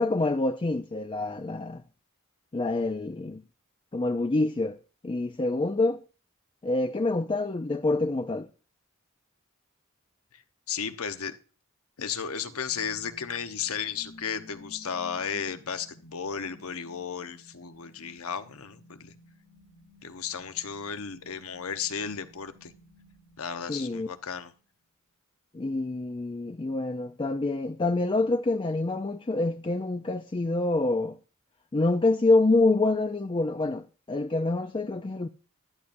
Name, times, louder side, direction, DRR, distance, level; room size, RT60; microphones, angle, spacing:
voice 1, 0.0-1.8 2.5-3.4 3.9-4.8 5.0-6.0 6.6-8.5 23.7-24.1 25.5-31.2 31.7-35.3, left 2 dB, 25° left, 0.4 m, -26 dB
voice 2, 10.7-11.3 12.0-19.1 20.0-22.7 23.4-24.5, left 7 dB, 75° left, 0.9 m, -34 dB
sound 1, 12.7-24.6, left 1 dB, 45° left, 1.3 m, -55 dB
14.0 x 12.0 x 2.6 m
head